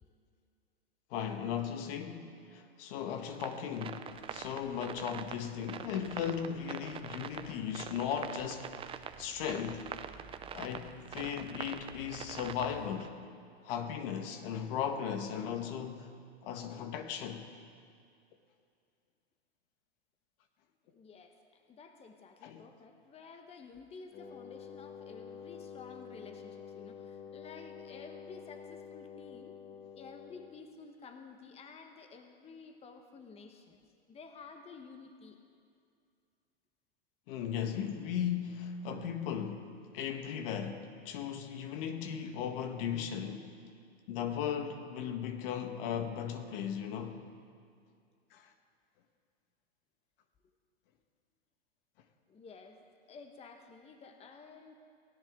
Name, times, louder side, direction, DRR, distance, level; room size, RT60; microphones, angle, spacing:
voice 1, 1.1-8.8 9.2-9.9 10.5-13.2 13.6-16.1 16.4-17.5 22.4-22.7 37.3-43.5 44.1-47.2 48.3-48.5, left 8 dB, 55° left, 7 dB, 1.6 m, -37 dB
sound 1, 3.3-13.1, right 8 dB, 15° right, 0.6 m, -44 dB
sound 2, 4.0-13.0, right 8 dB, 35° right, 1.2 m, -57 dB
voice 2, 20.8-29.6 29.9-33.8 34.1-35.4 52.3-54.7, left 4 dB, 20° left, 5 dB, 1.2 m, -52 dB
Wind instrument woodwind instrument, 24.1-30.7, left 7 dB, 35° left, 1.7 m, -48 dB
23.0 x 16.5 x 3.8 m, 2.3 s
hypercardioid pair, 125°, 33 cm